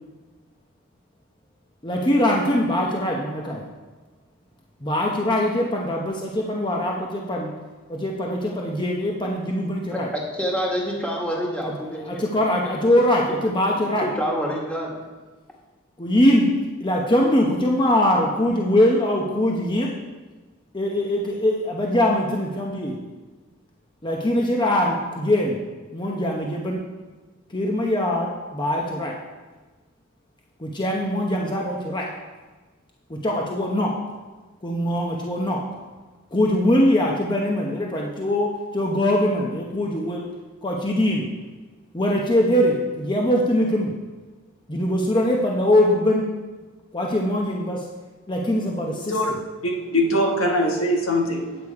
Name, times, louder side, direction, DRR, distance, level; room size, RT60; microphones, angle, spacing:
voice 1, 1.8-3.6 4.8-7.5 7.9-10.1 11.6-14.1 16.0-16.5 16.8-19.9 20.7-23.0 24.0-25.6 25.9-26.8 27.5-29.1 30.6-32.1 33.1-34.0 34.6-35.6 36.3-40.3 40.6-41.3 41.9-43.9 44.7-46.2 46.9-47.8 48.3-49.4, left 1 dB, 25° left, -1 dB, 0.9 m, -22 dB
voice 2, 9.9-12.2 12.6-12.7 14.0-15.0, equal, 5° left, -3 dB, 1.7 m, -27 dB
voice 3, 49.6-51.6, equal, 90° left, 1 dB, 1.5 m, -22 dB
9.0 x 8.2 x 4.8 m, 1.3 s
head